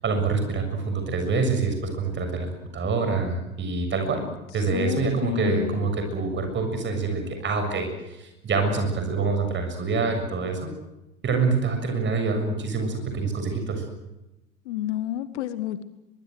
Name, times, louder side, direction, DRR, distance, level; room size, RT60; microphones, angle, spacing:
voice 1, 0.0-4.3 4.5-10.7 11.2-13.9, right 4 dB, 25° right, 6 dB, 7.1 m, -26 dB
voice 2, 4.7-5.8 14.7-15.8, left 13 dB, 55° left, 14 dB, 1.4 m, -30 dB
23.0 x 23.0 x 7.9 m, 0.98 s
figure-of-eight pair, 85°, 42 cm